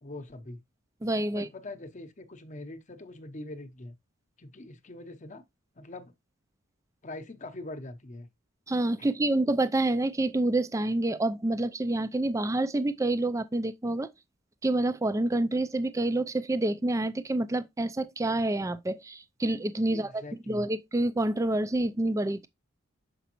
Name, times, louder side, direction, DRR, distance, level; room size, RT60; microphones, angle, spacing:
voice 1, 0.0-0.6 1.3-3.9 4.4-5.4 5.8-6.1 7.0-8.3 9.0-9.1 19.9-20.7, left 2 dB, 35° left, 0.8 m, -43 dB
voice 2, 1.0-1.5 8.7-14.1 14.6-22.4, right 2 dB, 15° right, 0.4 m, -28 dB
6.7 x 5.0 x 3.0 m
head